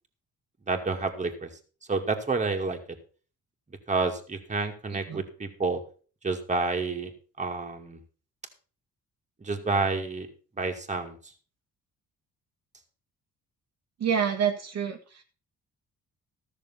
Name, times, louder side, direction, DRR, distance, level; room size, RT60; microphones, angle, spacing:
voice 1, 0.7-1.5 1.9-2.8 3.9-5.8 6.2-7.1 7.4-8.0 9.4-10.3 10.6-11.2, right 3 dB, 25° right, 3 dB, 2.3 m, -29 dB
voice 2, 4.9-5.2 14.0-15.2, right 7 dB, 55° right, 2 dB, 1.6 m, -28 dB
13.5 x 6.8 x 5.7 m, 0.39 s
cardioid pair, 90°, 30 cm